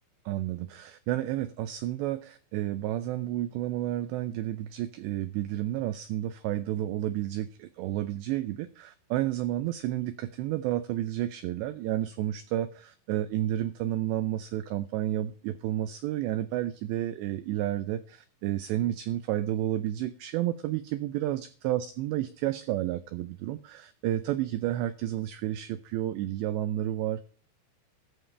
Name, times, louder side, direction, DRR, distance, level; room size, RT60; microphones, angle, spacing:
voice 1, 0.3-27.2, right 13 dB, 90° right, 12 dB, 2.5 m, -31 dB
14.0 x 13.5 x 3.3 m, 0.41 s
omnidirectional pair, 5.8 m